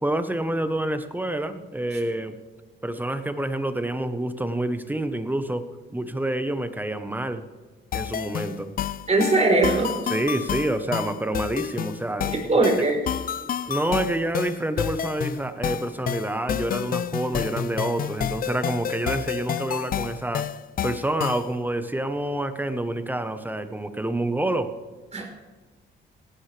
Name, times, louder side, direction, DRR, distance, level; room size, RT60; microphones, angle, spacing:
voice 1, 0.0-2.4 2.8-5.6 5.9-7.5 7.9-8.7 10.1-12.3 13.7-20.5 20.8-24.7, right 1 dB, 10° right, 9 dB, 1.1 m, -27 dB
sound 1, 7.9-21.5, left 9 dB, 45° left, 0.5 m, -30 dB
voice 2, 9.1-10.0 12.5-13.0 25.1-25.3, right 2 dB, 35° right, 1 dB, 4.2 m, -20 dB
18.0 x 12.0 x 3.4 m, 1.3 s
cardioid pair, 90°, 20 cm